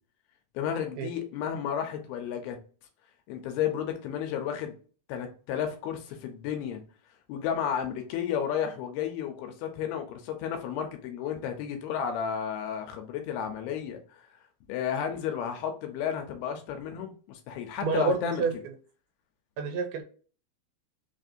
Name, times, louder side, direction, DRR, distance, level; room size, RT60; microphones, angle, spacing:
voice 1, 0.5-2.6 3.3-4.8 5.1-6.8 7.3-14.2 14.7-18.4, left 8 dB, 80° left, 2.5 m, -32 dB
voice 2, 17.8-18.5 19.6-20.0, right 4 dB, 90° right, 2.6 m, -28 dB
5.8 x 2.6 x 2.5 m
omnidirectional pair, 4.5 m